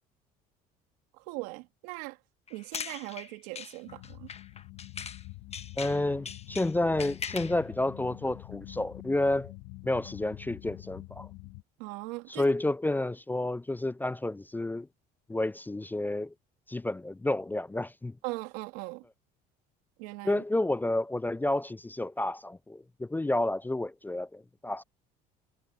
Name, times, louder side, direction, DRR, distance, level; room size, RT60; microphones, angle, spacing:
voice 1, 1.2-2.2 2.5-4.3 11.8-12.5 18.2-19.0 20.0-20.4, right 24 dB, 80° right, 2.6 m, -40 dB
sound 1, 2.5-5.2 5.5-7.6, left 6 dB, 30° left, 1.3 m, -41 dB
sound 2, 3.8-11.6, left 20 dB, 75° left, 1.9 m, -46 dB
voice 2, 5.8-9.5 9.8-11.3 12.3-14.9 15.3-16.3 16.7-18.2 20.2-24.8, left 2 dB, 10° left, 0.4 m, -30 dB
supercardioid pair, 80°, 20 cm